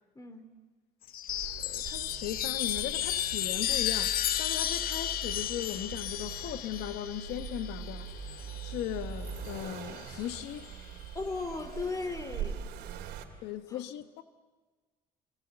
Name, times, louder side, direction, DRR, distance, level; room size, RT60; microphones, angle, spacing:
voice 1, 0.1-0.5 11.1-12.7 13.7-13.9, left 3 dB, 20° left, 2.9 m, -37 dB
Chime, 1.0-8.9 10.1-10.7, left 11 dB, 60° left, 0.9 m, -33 dB
Accelerating revving vroom, 1.3-13.2, right 7 dB, 80° right, 2.9 m, -42 dB
voice 2, 1.6-8.1 8.6-10.7 13.4-14.2, left 12 dB, 90° left, 1.1 m, -38 dB
28.0 x 23.0 x 8.0 m
cardioid pair, 110°, 17 cm